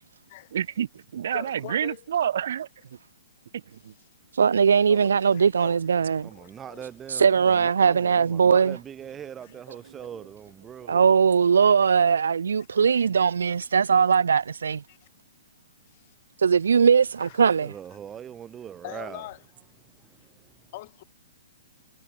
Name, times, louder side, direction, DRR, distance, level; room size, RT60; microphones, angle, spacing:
voice 1, 0.5-2.7 3.5-3.9 9.7-10.1 10.9-11.0, right 9 dB, 65° right, 7.6 m, -29 dB
voice 2, 1.3-2.0 4.9-6.8 9.4-9.5 13.0-13.1 14.9-15.0 15.9-16.1 17.2-17.4 18.8-19.4 20.7-21.0, left 18 dB, 45° left, 5.3 m, -43 dB
voice 3, 4.4-6.3 7.1-8.8 10.9-14.8 16.4-17.7, right 6 dB, 80° right, 0.6 m, -20 dB
voice 4, 6.2-11.0 17.6-19.3 19.8-20.6, right 9 dB, 15° right, 3.4 m, -42 dB
hypercardioid pair, 140°, 0 cm